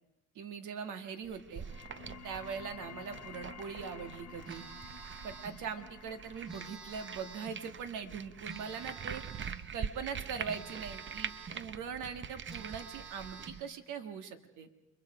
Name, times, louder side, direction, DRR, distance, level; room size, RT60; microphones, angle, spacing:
voice 1, 0.3-1.6 2.2-4.6 5.2-9.2 9.7-14.7, right 6 dB, 85° right, 7 dB, 1.8 m, -41 dB
sound 1, 1.3-13.6, right 7 dB, 40° right, 0.7 m, -45 dB
sound 2, 1.4-12.5, left 7 dB, 65° left, 1.5 m, -54 dB
Telephone, 4.4-5.6 6.4-7.6 8.5-9.6 10.5-11.6 12.1-12.2 12.5-13.6, right 5 dB, 65° right, 6.1 m, -48 dB
29.0 x 22.5 x 4.9 m, 0.95 s
cardioid pair, 90°, 30 cm